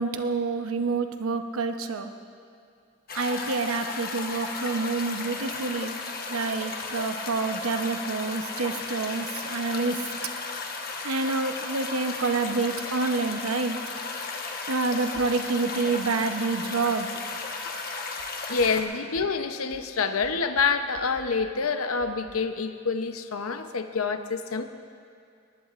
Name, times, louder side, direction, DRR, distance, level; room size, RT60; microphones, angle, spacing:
voice 1, 0.0-2.1 3.1-6.0 6.3-10.1 11.0-13.8 14.7-17.1, right 3 dB, 90° right, 7 dB, 0.9 m, -28 dB
sound 1, 3.1-18.8, left 4 dB, 45° left, 1.2 m, -35 dB
voice 2, 18.5-24.6, left 5 dB, 80° left, 8 dB, 0.8 m, -27 dB
19.5 x 19.5 x 2.5 m, 2.3 s
head